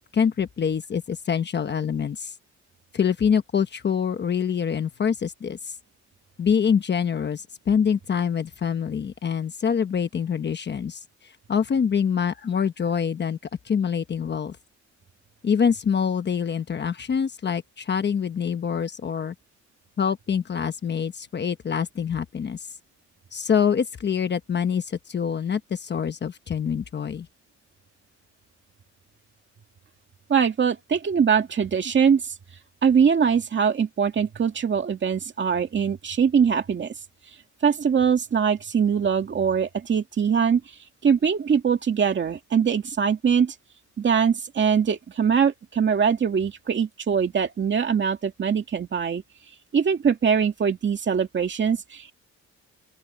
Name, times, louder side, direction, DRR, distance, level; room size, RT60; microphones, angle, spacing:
voice 1, 0.0-2.3 2.9-5.6 6.4-11.0 11.5-13.4 13.6-14.6 15.4-19.3 20.0-22.6 23.3-27.3, left 7 dB, 35° left, 1.1 m, -25 dB
voice 2, 30.3-32.2 32.8-36.9 37.6-40.6 41.0-43.5 44.0-49.2 49.7-52.1, right 7 dB, 35° right, 2.2 m, -22 dB
open air
cardioid pair, 170°, 31 cm